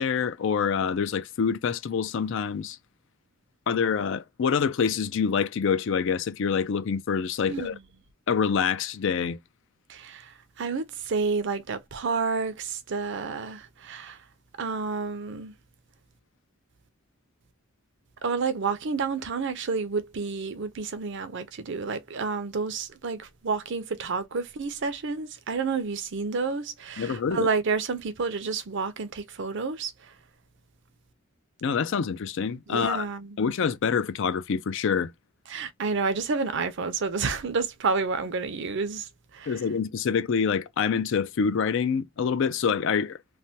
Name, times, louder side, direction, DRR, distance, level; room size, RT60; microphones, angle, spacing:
voice 1, 0.0-2.8 3.7-7.7 8.3-9.4 27.0-27.5 31.6-33.0 33.4-35.1 39.5-43.2, left 6 dB, 60° left, 0.4 m, -26 dB
voice 2, 7.4-7.8 9.9-14.2 14.6-15.5 18.2-30.1 32.7-33.4 35.5-39.6, right 4 dB, 60° right, 0.6 m, -30 dB
3.1 x 2.1 x 2.7 m
head